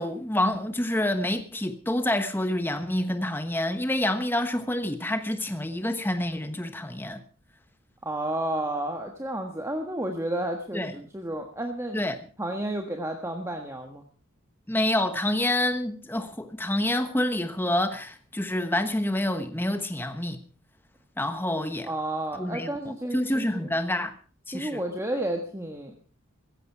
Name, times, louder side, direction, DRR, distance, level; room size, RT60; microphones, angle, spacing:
voice 1, 0.0-7.2 10.7-11.0 11.9-12.2 14.7-20.4 21.2-21.9 22.4-24.1 24.5-24.8, left 1 dB, 10° left, 1.1 m, -27 dB
voice 2, 8.0-12.0 12.4-14.0 21.8-23.7 24.5-25.9, right 1 dB, 15° right, 1.4 m, -31 dB
16.0 x 14.5 x 4.7 m
head